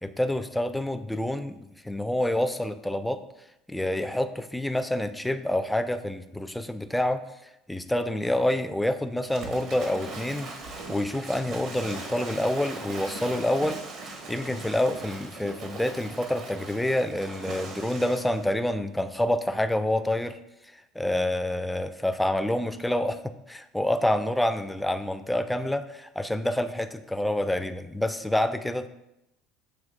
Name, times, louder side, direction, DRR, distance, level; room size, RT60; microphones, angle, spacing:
voice 1, 0.0-3.2 3.7-7.2 7.7-10.5 10.9-13.8 14.3-20.4 21.0-28.9, left 1 dB, 5° left, 9 dB, 0.4 m, -27 dB
Waves surf / Splash splatter, 9.2-18.5, right 3 dB, 55° right, 0.9 m, -40 dB
7.1 x 2.9 x 2.5 m, 0.86 s
supercardioid pair, 85°, 0 cm